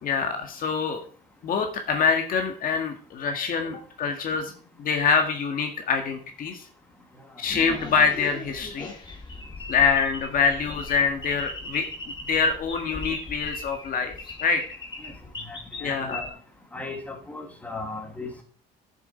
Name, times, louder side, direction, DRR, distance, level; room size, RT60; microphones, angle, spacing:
voice 1, 0.0-1.0 1.4-4.5 4.8-6.6 7.4-8.9 9.7-11.9 12.3-14.1 14.4-14.6 15.8-16.2, left 5 dB, 55° left, 4 dB, 1.8 m, -25 dB
sound 1, 7.4-16.3, left 2 dB, 25° left, 2.5 m, -38 dB
voice 2, 15.0-16.2 16.7-18.4, left 2 dB, 10° left, 2 dB, 2.5 m, -37 dB
10.5 x 7.3 x 4.4 m, 0.43 s
cardioid pair, 110°, 17 cm